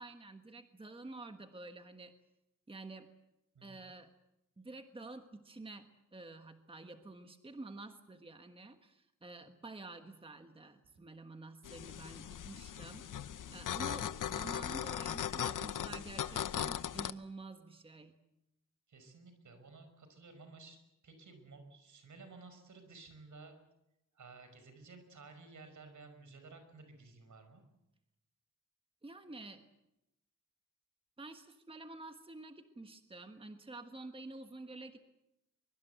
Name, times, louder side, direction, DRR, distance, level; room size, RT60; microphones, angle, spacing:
voice 1, 0.0-2.1 2.7-3.1 3.6-4.1 4.6-13.1 13.5-18.2 29.0-29.6 31.2-35.0, right 2 dB, 15° right, 7 dB, 1.4 m, -49 dB
sound 1, 11.6-17.1, left 9 dB, 80° left, 0.8 m, -39 dB
voice 2, 18.9-20.8 21.0-23.6 24.2-27.6, right 3 dB, 70° right, 8 dB, 5.5 m, -54 dB
23.5 x 23.0 x 8.0 m, 0.89 s
wide cardioid pair, 140°, 31 cm